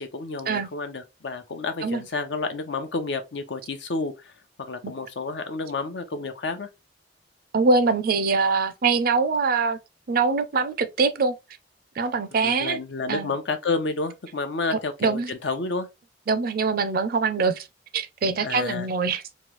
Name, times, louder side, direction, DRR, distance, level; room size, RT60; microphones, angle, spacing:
voice 1, 0.0-4.3 4.6-6.7 12.4-15.9 18.4-18.9, left 3 dB, 75° left, 0.7 m, -30 dB
voice 2, 7.5-9.8 10.1-11.4 12.0-12.8 13.1-13.3 14.7-15.3 16.3-17.7 17.9-19.2, right 4 dB, 55° right, 0.5 m, -23 dB
3.1 x 2.3 x 3.0 m
head